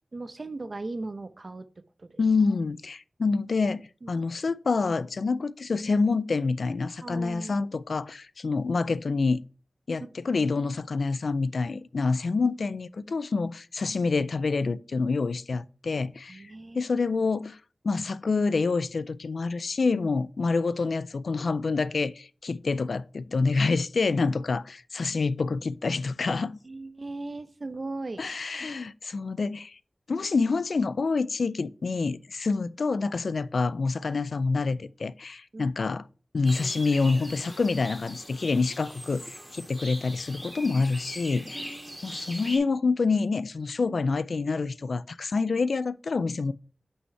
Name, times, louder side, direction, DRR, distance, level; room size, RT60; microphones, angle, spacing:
voice 1, 0.1-1.6 2.0-2.2 4.0-4.2 7.0-7.7 16.3-16.9 26.6-28.2 35.5-35.7 41.5-42.0, right 2 dB, 55° right, 0.8 m, -38 dB
voice 2, 2.2-9.4 9.9-16.4 16.7-17.6 17.8-26.6 28.2-29.8 30.1-36.0 36.3-41.7 42.0-46.5, left 4 dB, 80° left, 0.4 m, -27 dB
sound 1, 36.4-42.6, equal, ahead, 2.2 m, -41 dB
6.3 x 5.5 x 4.5 m
cardioid pair, 45°, 0 cm